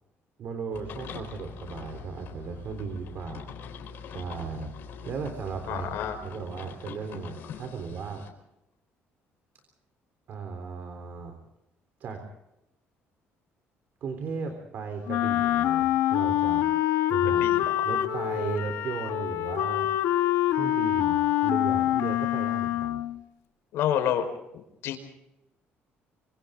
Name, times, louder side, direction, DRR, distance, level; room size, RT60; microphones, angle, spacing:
voice 1, 0.4-3.5 4.0-4.7 5.0-5.9 6.2-8.3 10.3-11.4 12.0-12.2 14.0-16.7 17.1-20.2 20.5-23.0, right 5 dB, 45° right, 6 dB, 3.6 m, -36 dB
sound 1, 0.7-8.3, left 6 dB, 55° left, 4.4 m, -43 dB
voice 2, 5.7-6.2 17.2-17.6 23.7-24.3 24.8-25.0, left 10 dB, 75° left, 7 dB, 4.7 m, -28 dB
Wind instrument woodwind instrument, 15.1-23.2, left 13 dB, 90° left, 1.4 m, -25 dB
27.0 x 26.0 x 3.8 m, 0.88 s
cardioid pair, 180°, 4 cm